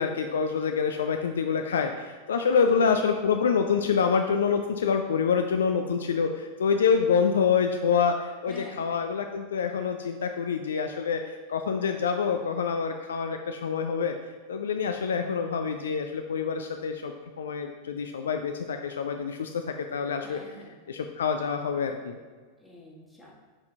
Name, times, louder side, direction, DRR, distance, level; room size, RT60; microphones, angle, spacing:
voice 1, 0.0-11.2 11.5-14.1 14.5-19.5 19.9-20.4 20.9-22.2, left 6 dB, 65° left, 5 dB, 0.3 m, -26 dB
voice 2, 2.5-3.0 8.5-8.9 20.2-20.8 22.6-23.3, left 2 dB, ahead, -6 dB, 1.4 m, -47 dB
6.0 x 4.3 x 3.8 m, 1.4 s
figure-of-eight pair, 90°, 0 cm